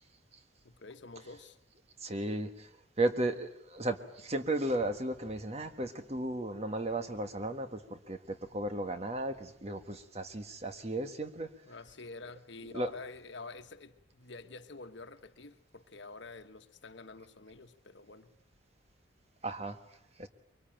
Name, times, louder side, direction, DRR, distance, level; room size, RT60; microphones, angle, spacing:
voice 1, 0.6-1.6 11.6-18.3, left 3 dB, 60° left, 1.3 m, -48 dB
voice 2, 2.0-2.7 3.0-11.5 12.7-12.9 19.4-19.8 20.2-20.3, right 1 dB, 30° right, 1.4 m, -35 dB
23.5 x 23.5 x 9.0 m
head